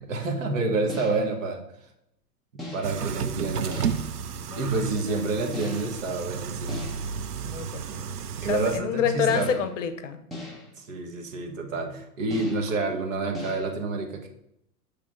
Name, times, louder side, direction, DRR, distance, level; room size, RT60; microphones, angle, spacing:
voice 1, 0.0-1.6 2.5-3.9 4.5-6.8 8.4-9.6 10.8-14.3, right 3 dB, 55° right, 1.4 m, -28 dB
sound 1, 0.9-1.4 2.6-3.1 3.7-4.2 5.5-6.1 6.7-7.3 9.3-9.8 10.3-10.8 12.3-12.8 13.3-13.7, left 1 dB, ahead, 1.0 m, -39 dB
sound 2, 2.8-8.8, right 7 dB, 75° right, 0.6 m, -32 dB
voice 2, 7.4-8.0 8.5-10.2, left 8 dB, 50° left, 0.7 m, -27 dB
7.1 x 3.4 x 4.6 m
figure-of-eight pair, 100°, 46 cm